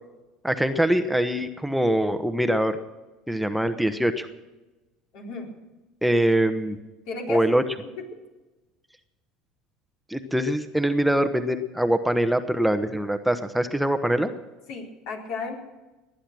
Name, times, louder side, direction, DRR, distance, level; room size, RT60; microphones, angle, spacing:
voice 1, 0.4-2.8 3.3-4.3 6.0-6.8 7.3-7.6 10.1-14.3, right 1 dB, 5° right, 8 dB, 1.1 m, -23 dB
voice 2, 5.1-5.5 7.1-7.4 14.7-15.6, left 4 dB, 65° left, 0 dB, 4.1 m, -33 dB
19.5 x 10.5 x 6.2 m, 1.1 s
hypercardioid pair, 75°, 0 cm